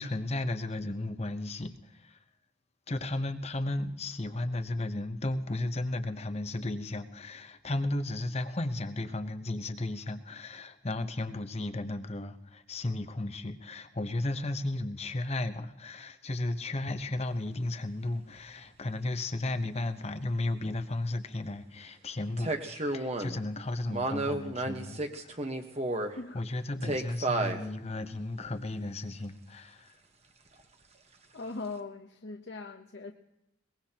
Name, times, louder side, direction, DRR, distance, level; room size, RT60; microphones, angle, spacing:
voice 1, 0.0-2.2 2.9-25.4 26.3-29.9, left 2 dB, 30° left, 0.9 m, -34 dB
sound 1, 17.5-17.6 22.4-23.4 23.9-26.1 26.8-27.6 28.4-28.5, right 2 dB, 30° right, 1.2 m, -32 dB
voice 2, 31.3-33.1, left 3 dB, 60° left, 1.0 m, -40 dB
22.5 x 20.5 x 2.9 m
head